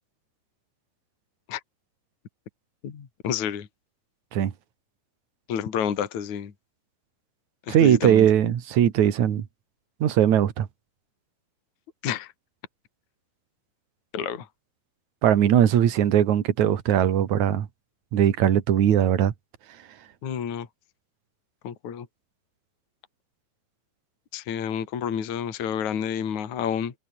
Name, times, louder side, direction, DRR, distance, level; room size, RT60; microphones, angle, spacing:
voice 1, 2.8-3.7 5.5-6.5 7.7-8.3 12.0-12.3 14.1-14.5 20.2-20.7 21.6-22.1 24.3-26.9, left 8 dB, 45° left, 3.5 m, -29 dB
voice 2, 7.7-9.5 10.0-10.7 15.2-17.7 18.1-19.3, right 10 dB, 55° right, 2.5 m, -20 dB
omnidirectional pair, 5.5 m